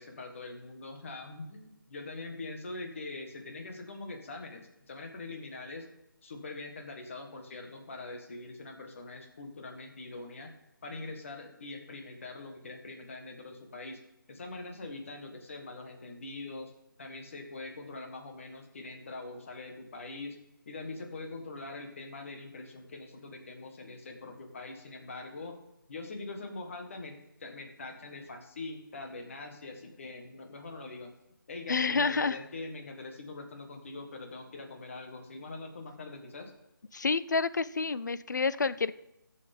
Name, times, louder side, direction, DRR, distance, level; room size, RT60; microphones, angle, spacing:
voice 1, 0.0-5.9 6.2-10.5 10.8-14.0 14.3-16.7 17.0-20.4 20.6-25.6 25.9-31.1 31.5-36.5, left 3 dB, 35° left, 4 dB, 1.6 m, -43 dB
voice 2, 31.7-32.4 36.9-39.0, left 4 dB, 55° left, 16 dB, 0.5 m, -29 dB
20.5 x 7.1 x 3.7 m, 0.87 s
figure-of-eight pair, 165°, 12 cm